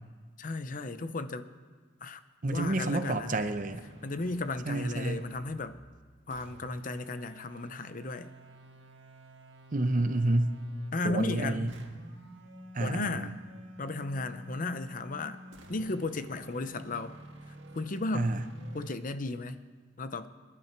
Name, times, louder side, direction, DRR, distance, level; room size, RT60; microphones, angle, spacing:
voice 1, 0.4-1.5 2.0-2.2 2.5-3.4 4.0-5.8 6.3-8.3 10.9-11.8 12.8-13.3 13.8-15.4 15.7-17.1 17.7-18.3 18.7-19.6 20.0-20.3, left 2 dB, 45° left, 11 dB, 0.7 m, -34 dB
voice 2, 2.4-3.8 4.7-5.2 9.7-10.5 11.0-11.7 12.7-13.3 18.1-18.4, right 2 dB, 45° right, 9 dB, 0.8 m, -29 dB
sound 1, 2.5-5.8 6.3-11.0 11.7-19.0, equal, 75° right, 1.7 m, -50 dB
27.5 x 11.0 x 4.6 m, 1.5 s
head